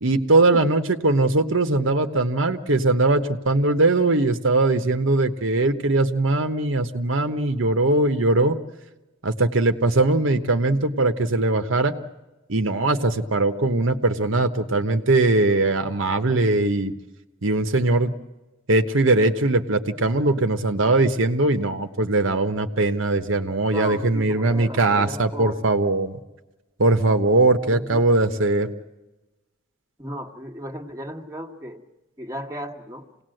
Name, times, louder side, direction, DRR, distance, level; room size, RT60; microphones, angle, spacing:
voice 1, 0.0-8.6 9.2-11.9 12.5-16.9 17.4-18.1 18.7-26.2 26.8-28.7, right 2 dB, 65° right, 8 dB, 1.1 m, -20 dB
voice 2, 23.7-25.6 27.7-28.1 30.0-31.8 32.2-33.1, equal, 15° right, 2 dB, 1.4 m, -35 dB
27.5 x 18.5 x 7.8 m, 1.1 s
head